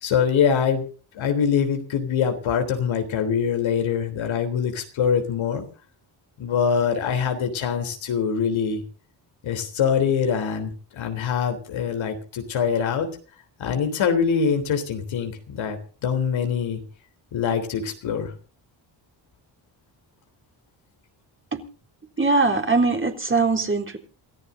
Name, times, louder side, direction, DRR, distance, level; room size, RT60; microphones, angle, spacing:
voice 1, 0.0-0.8 1.1-5.6 6.4-8.8 9.4-13.1 13.6-16.8 17.3-18.3, left 7 dB, 90° left, 5 dB, 3.6 m, -24 dB
voice 2, 22.2-24.0, right 3 dB, 25° right, 1 dB, 3.7 m, -21 dB
28.5 x 14.5 x 2.7 m, 0.39 s
cardioid pair, 85°, 46 cm